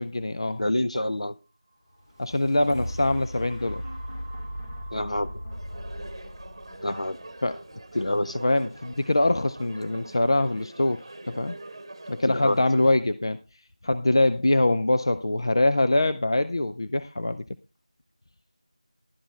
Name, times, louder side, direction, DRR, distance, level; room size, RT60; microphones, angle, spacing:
voice 1, 0.0-0.6 2.2-3.8 7.4-7.6 8.4-11.6 12.1-13.4 13.8-17.4, left 2 dB, 40° left, 10 dB, 0.5 m, -24 dB
voice 2, 0.6-1.3 4.9-5.3 6.8-7.2 7.9-8.4 12.3-12.6, left 1 dB, 65° left, 11 dB, 0.9 m, -27 dB
sound 1, 1.9-10.0 10.5-10.6, equal, 25° left, 1.3 m, -39 dB
sound 2, 5.5-12.9, right 2 dB, 40° right, 1.3 m, -44 dB
11.5 x 7.3 x 4.3 m, 0.30 s
figure-of-eight pair, 175°, 4 cm